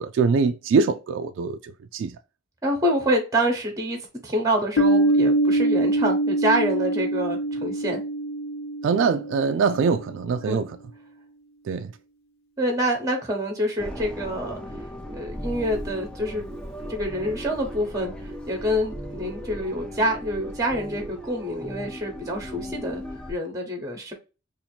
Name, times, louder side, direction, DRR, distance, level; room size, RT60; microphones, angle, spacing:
voice 1, 0.0-2.1 8.8-10.8 11.6-11.9, right 5 dB, 65° right, 0.3 m, -23 dB
voice 2, 2.6-8.0 10.4-10.6 12.6-14.6 15.1-16.4 16.9-23.0 23.3-24.1, equal, 15° right, 0.9 m, -26 dB
Piano, 4.8-10.1, right 1 dB, 80° left, 0.7 m, -24 dB
sound 1, 13.8-23.3, equal, 5° left, 0.5 m, -37 dB
2.7 x 2.5 x 4.2 m
head